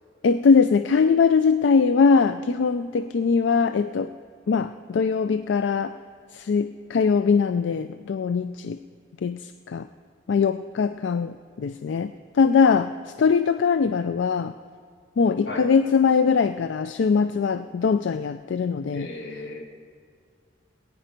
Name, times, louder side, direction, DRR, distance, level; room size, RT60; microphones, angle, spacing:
voice 1, 0.2-4.1 4.5-5.9 6.3-8.8 9.2-9.9 10.3-12.9 13.2-14.5 15.2-19.1, left 5 dB, 90° left, 11 dB, 0.4 m, -21 dB
voice 2, 18.9-19.6, left 2 dB, 65° left, 0 dB, 2.3 m, -35 dB
20.5 x 9.1 x 5.2 m, 2.1 s
head